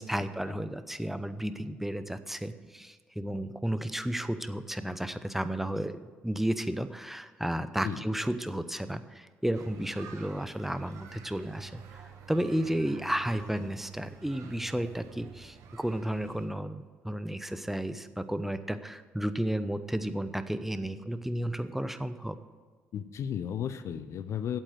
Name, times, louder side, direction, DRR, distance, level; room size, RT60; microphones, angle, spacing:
voice 1, 0.0-11.8 12.3-22.4, right 1 dB, 5° right, 12 dB, 0.8 m, -33 dB
sound 1, 9.5-16.5, right 6 dB, 70° right, 1.5 m, -49 dB
voice 2, 22.9-24.6, left 9 dB, 60° left, 12 dB, 0.6 m, -34 dB
8.4 x 8.1 x 7.8 m, 1.5 s
hypercardioid pair, 50°, 6 cm